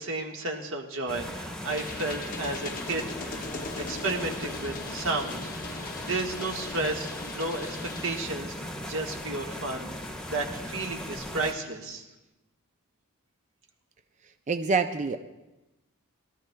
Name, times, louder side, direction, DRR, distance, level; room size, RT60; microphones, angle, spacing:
voice 1, 0.0-3.4 3.7-5.4 5.8-8.5 8.9-9.9 10.3-12.0, right 2 dB, 65° right, 1 dB, 1.5 m, -32 dB
sound 1, 1.1-11.5, left 1 dB, 5° left, 1.0 m, -38 dB
sound 2, 1.7-8.2, left 3 dB, 40° left, 0.7 m, -40 dB
voice 2, 14.5-15.2, right 4 dB, 35° right, 7 dB, 0.4 m, -26 dB
21.5 x 13.0 x 2.3 m, 1.0 s
head